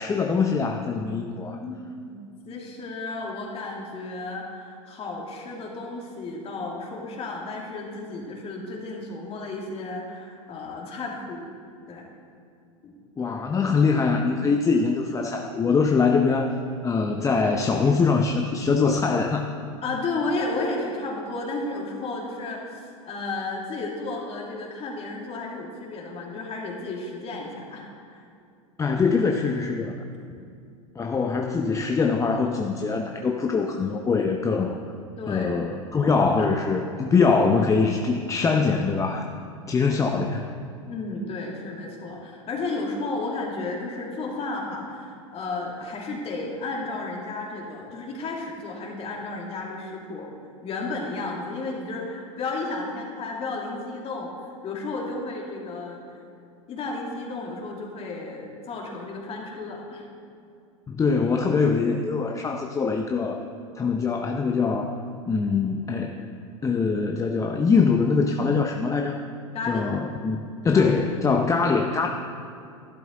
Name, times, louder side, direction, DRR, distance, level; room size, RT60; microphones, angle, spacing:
voice 1, 0.0-1.6 13.2-16.5 16.8-19.5 28.8-30.0 31.0-34.8 35.3-39.3 39.7-40.5 60.9-63.4 63.7-65.0 65.3-66.3 66.6-69.2 69.7-72.1, left 4 dB, 20° left, 3 dB, 0.6 m, -23 dB
voice 2, 1.5-11.4 11.9-12.1 12.8-12.9 19.8-27.9 28.1-28.2 35.2-35.5 36.4-36.5 40.9-50.3 50.6-56.2 56.7-60.1 69.5-69.9 70.7-70.9, left 3 dB, 35° left, -1 dB, 2.4 m, -33 dB
11.5 x 11.5 x 3.8 m, 2.4 s
hypercardioid pair, 90°, 17 cm